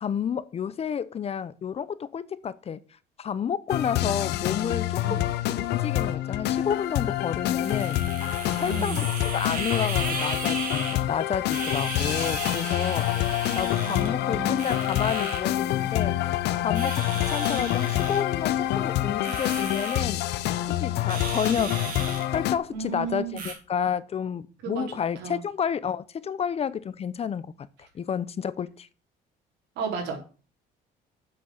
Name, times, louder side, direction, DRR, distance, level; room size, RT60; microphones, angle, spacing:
voice 1, 0.0-2.8 3.2-5.2 5.5-8.0 8.5-9.0 9.3-16.2 16.6-20.2 20.8-21.9 22.3-27.7 27.9-28.9, left 7 dB, 35° left, 0.7 m, -30 dB
sound 1, 3.7-22.6, left 13 dB, 80° left, 0.8 m, -27 dB
sound 2, 6.4-23.5, right 4 dB, 55° right, 3.7 m, -37 dB
voice 2, 8.6-9.1 13.7-14.7 22.7-23.4 24.6-25.4 29.8-30.2, right 5 dB, 85° right, 3.7 m, -34 dB
7.7 x 6.2 x 7.3 m
cardioid pair, 110°, 17 cm